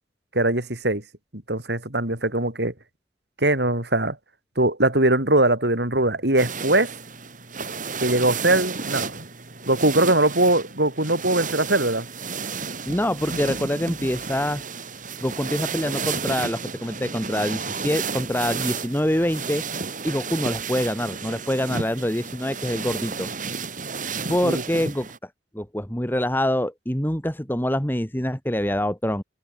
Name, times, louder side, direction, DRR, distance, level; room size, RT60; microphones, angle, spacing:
voice 1, 0.3-1.0 1.3-2.7 3.4-4.2 4.6-6.9 8.0-9.2 9.7-12.1 24.4-24.6, right 2 dB, 65° right, 5.5 m, -21 dB
sound 1, 6.4-25.2, right 5 dB, 50° right, 7.3 m, -32 dB
voice 2, 12.8-14.6 15.2-19.6 20.0-23.3 24.3-25.1 25.5-29.2, left 1 dB, 10° left, 3.3 m, -25 dB
open air
head